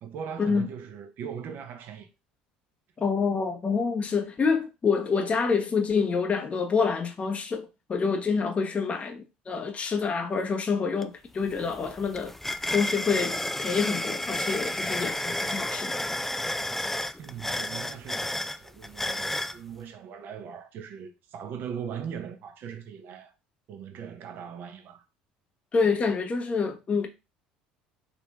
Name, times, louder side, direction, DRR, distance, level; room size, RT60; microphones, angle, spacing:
voice 1, 0.0-2.1 17.2-23.3 23.7-25.0, right 7 dB, 55° right, 1.0 m, -39 dB
voice 2, 3.0-12.3 12.7-16.0 25.7-27.1, left 5 dB, 30° left, 0.9 m, -27 dB
sound 1, 11.0-11.1 11.4-19.6, left 1 dB, 5° left, 0.4 m, -31 dB
4.0 x 3.0 x 3.6 m
hypercardioid pair, 70°, 4 cm